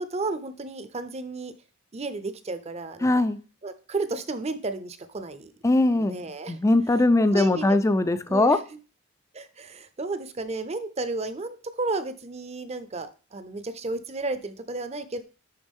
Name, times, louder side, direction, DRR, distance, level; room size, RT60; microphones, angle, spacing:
voice 1, 0.0-1.5 1.9-3.2 3.6-5.5 6.0-6.6 7.3-7.7 8.3-8.8 9.3-15.2, right 3 dB, 30° right, 11 dB, 0.6 m, -33 dB
voice 2, 3.0-3.4 5.6-6.2 6.5-8.6, left 2 dB, 15° left, 11 dB, 0.4 m, -21 dB
10.5 x 3.9 x 3.6 m, 0.36 s
head